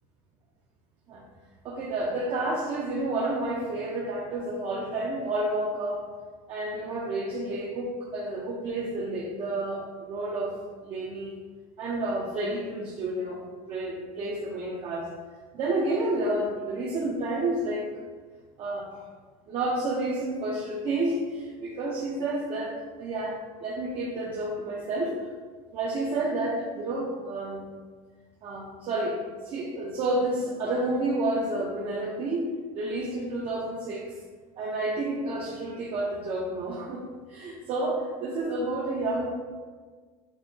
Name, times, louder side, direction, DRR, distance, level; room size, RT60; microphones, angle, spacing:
voice 1, 1.6-6.0 6.5-10.6 10.8-11.3 11.8-15.1 15.5-17.9 18.6-19.0 19.5-25.2 25.7-27.7 28.4-29.2 29.4-34.1 34.6-37.0 37.3-39.3, right 2 dB, 35° right, -4 dB, 0.5 m, -30 dB
6.0 x 2.1 x 2.6 m, 1.5 s
cardioid pair, 155°, 15 cm